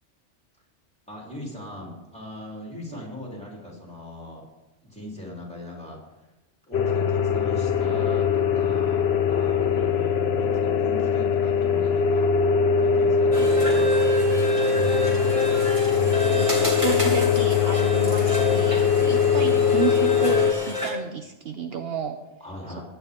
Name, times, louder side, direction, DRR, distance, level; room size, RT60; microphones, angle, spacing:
voice 1, 1.1-4.5 4.9-6.3 6.7-12.5 12.8-14.1 19.3-19.5 22.4-22.8, left 1 dB, 5° left, -3 dB, 3.7 m, -40 dB
sound 1, 6.7-20.5, left 6 dB, 65° left, 1.0 m, -21 dB
voice 2, 9.7-10.0 13.4-13.5 16.2-22.2, right 7 dB, 60° right, 7 dB, 0.9 m, -32 dB
sound 2, 13.3-20.9, equal, 25° right, 2.7 m, -30 dB
16.0 x 10.5 x 3.7 m, 1.0 s
omnidirectional pair, 1.2 m